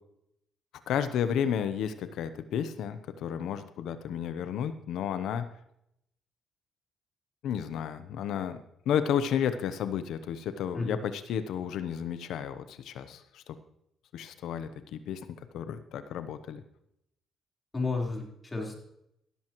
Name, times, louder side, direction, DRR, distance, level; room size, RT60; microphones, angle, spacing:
voice 1, 0.9-5.5 7.4-13.5 14.1-16.6, left 8 dB, 80° left, 11 dB, 0.8 m, -32 dB
voice 2, 17.7-18.7, left 3 dB, 25° left, -1 dB, 3.9 m, -32 dB
15.5 x 13.5 x 3.1 m, 0.77 s
cardioid pair, 90°, 0 cm